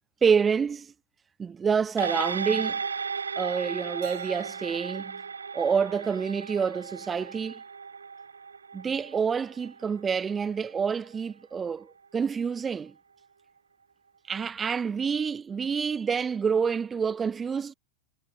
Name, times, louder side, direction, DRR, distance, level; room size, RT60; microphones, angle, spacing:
voice 1, 0.2-0.9 1.4-2.8 3.4-5.2 5.5-7.6 8.7-12.9 14.3-17.7, right 6 dB, 20° right, 0.6 m, -27 dB
sound 1, 2.0-10.7 11.1-11.2, right 5 dB, 75° right, 1.8 m, -35 dB
Keyboard (musical), 4.0-6.8, right 27 dB, 50° right, 5.2 m, -53 dB
figure-of-eight pair, 90°, 0 cm